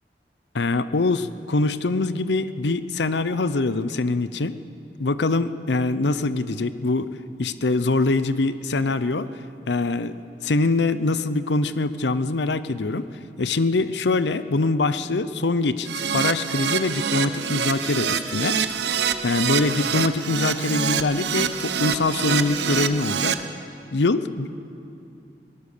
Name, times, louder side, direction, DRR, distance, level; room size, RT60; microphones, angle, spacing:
voice 1, 0.5-4.6 5.0-7.1 7.4-9.3 9.7-13.1 13.4-18.6 19.2-23.4 23.9-24.6, left 3 dB, 85° left, 13 dB, 0.7 m, -23 dB
Keyboard (musical), 15.8-23.3, right 7 dB, 80° right, 0.9 m, -25 dB
22.5 x 18.0 x 6.8 m, 2.6 s
head